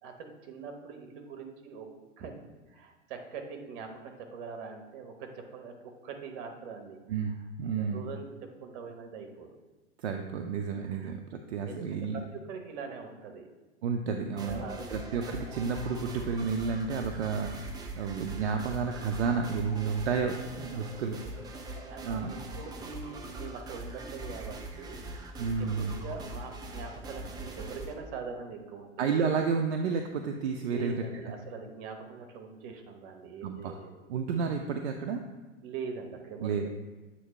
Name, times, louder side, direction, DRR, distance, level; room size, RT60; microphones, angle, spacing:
voice 1, 0.0-1.9 2.2-2.3 2.7-7.0 7.7-9.6 10.9-11.1 11.6-13.5 14.5-15.0 20.7-21.0 21.6-25.3 25.6-28.9 29.2-29.3 30.7-33.9 35.6-36.7, right 5 dB, 50° right, 4 dB, 1.0 m, -43 dB
voice 2, 7.1-8.0 10.0-12.2 13.8-14.6 14.9-21.2 22.0-22.4 25.4-26.0 29.0-31.3 33.4-33.8 34.1-35.2 36.4-36.7, right 5 dB, 65° right, 4 dB, 0.5 m, -31 dB
sound 1, 14.4-27.9, right 2 dB, 10° right, 0.4 m, -42 dB
7.8 x 3.0 x 4.1 m, 1.2 s
figure-of-eight pair, 95°, 35 cm